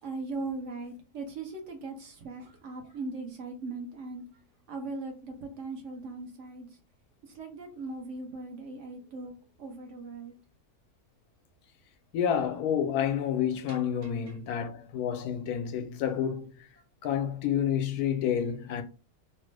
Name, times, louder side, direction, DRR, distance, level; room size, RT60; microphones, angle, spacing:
voice 1, 0.0-4.4 4.7-6.7 7.2-9.3 9.6-10.4 13.7-13.8 14.0-14.4, right 3 dB, 60° right, 1.0 m, -39 dB
voice 2, 12.1-16.5 17.0-18.8, left 9 dB, 80° left, 1.1 m, -29 dB
3.1 x 2.0 x 3.2 m
omnidirectional pair, 1.6 m